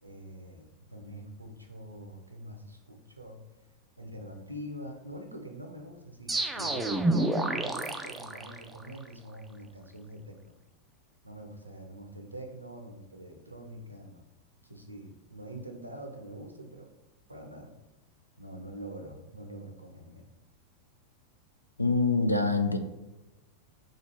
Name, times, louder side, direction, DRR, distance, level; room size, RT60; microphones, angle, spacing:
voice 1, 0.0-3.4 4.0-10.5 11.2-14.2 14.6-16.9 17.3-17.7 18.4-20.3, right 1 dB, 85° right, 3 dB, 0.6 m, -44 dB
sound 1, 6.3-9.1, right 2 dB, 10° right, 0.3 m, -29 dB
voice 2, 21.8-22.8, left 3 dB, 85° left, 7 dB, 0.3 m, -25 dB
3.1 x 2.4 x 4.2 m, 1.0 s
figure-of-eight pair, 90°, 0 cm